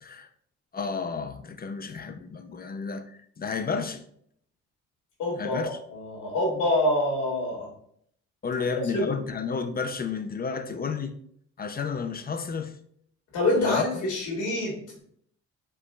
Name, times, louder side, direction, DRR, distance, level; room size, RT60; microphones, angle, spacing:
voice 1, 0.7-4.0 5.4-5.7 8.4-11.1 11.6-12.7 13.5-14.1, left 5 dB, 30° left, 0.7 m, -31 dB
voice 2, 5.2-7.7 8.9-9.2 13.3-15.0, left 1 dB, 90° left, 2.5 m, -26 dB
8.2 x 4.8 x 2.4 m
cardioid pair, 90°, 30 cm